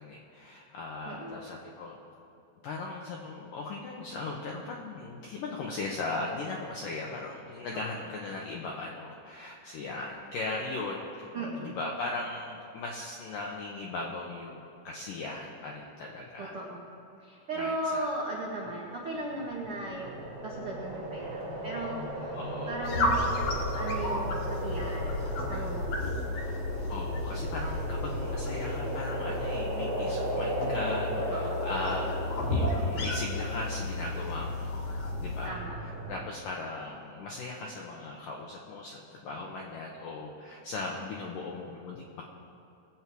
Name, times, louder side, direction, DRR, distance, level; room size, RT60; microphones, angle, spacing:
voice 1, 0.0-2.0 2.6-16.6 17.6-18.1 18.7-18.8 22.3-22.8 26.9-32.2 32.5-34.8 35.2-42.3, left 3 dB, 80° left, -1 dB, 1.9 m, -38 dB
voice 2, 1.0-1.5 7.7-7.8 11.3-11.8 16.4-16.8 17.2-22.3 22.7-26.5 31.3-31.6 35.4-35.8, right 1 dB, 75° right, -4 dB, 1.2 m, -37 dB
sound 1, 19.3-36.2, right 1 dB, 50° right, 2.3 m, -36 dB
sound 2, 22.8-35.5, left 2 dB, 55° left, 1.9 m, -33 dB
21.5 x 8.4 x 4.6 m, 2.7 s
omnidirectional pair, 5.3 m